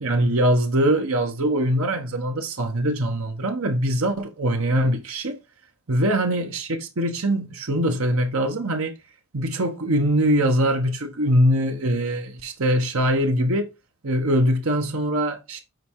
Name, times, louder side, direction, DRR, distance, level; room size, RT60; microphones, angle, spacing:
voice 1, 0.0-5.4 5.9-8.9 9.3-13.7 14.0-15.6, right 1 dB, 70° right, 1.1 m, -22 dB
9.2 x 3.3 x 4.6 m
head